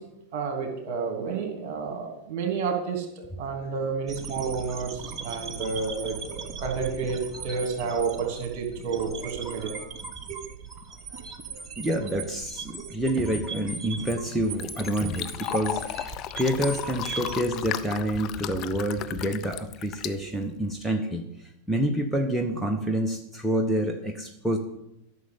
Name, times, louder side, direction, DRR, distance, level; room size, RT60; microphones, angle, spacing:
voice 1, 0.3-3.1 3.4-9.9 10.3-10.4, right 5 dB, 45° right, 4 dB, 3.1 m, -30 dB
sound 1, 4.1-17.4, right 5 dB, 25° right, 1.4 m, -39 dB
voice 2, 11.8-24.6, right 1 dB, 5° right, 4 dB, 1.0 m, -28 dB
Fill (with liquid), 13.8-20.9, left 12 dB, 35° left, 0.7 m, -36 dB
13.0 x 6.5 x 8.3 m, 0.85 s
figure-of-eight pair, 90°, 0 cm